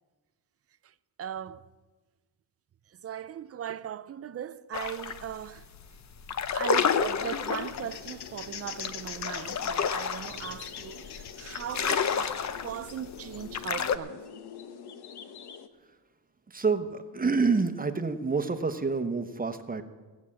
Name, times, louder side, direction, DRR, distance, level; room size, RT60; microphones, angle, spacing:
voice 1, 1.2-1.7 3.0-5.6 6.5-14.2, right 9 dB, 35° right, 0.4 m, -38 dB
sound 1, 4.7-5.2 5.6-5.8 6.2-14.0, left 7 dB, 45° left, 0.7 m, -30 dB
sound 2, 7.4-15.7, left 8 dB, 70° left, 1.0 m, -43 dB
voice 2, 16.5-19.8, right 4 dB, 20° right, 0.9 m, -28 dB
16.5 x 7.2 x 8.6 m
cardioid pair, 115°, 41 cm